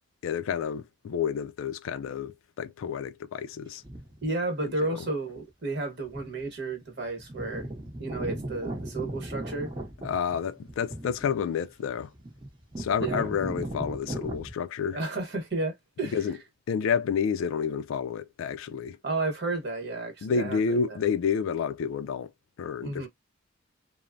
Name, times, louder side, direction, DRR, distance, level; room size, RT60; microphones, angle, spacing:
voice 1, 0.2-3.8 4.8-4.9 10.0-12.1 12.8-15.0 16.1-16.4 16.7-19.0 20.2-22.3 22.6-23.1, left 6 dB, 80° left, 0.3 m, -29 dB
sound 1, 3.8-4.2 5.3-5.4 6.1-6.4 6.7-6.8 7.1-14.5, right 1 dB, 25° right, 0.7 m, -37 dB
voice 2, 4.2-7.7 8.0-9.7 13.0-13.3 14.9-16.2 19.0-21.0 22.8-23.1, right 2 dB, 50° right, 1.1 m, -32 dB
3.1 x 2.0 x 2.5 m
head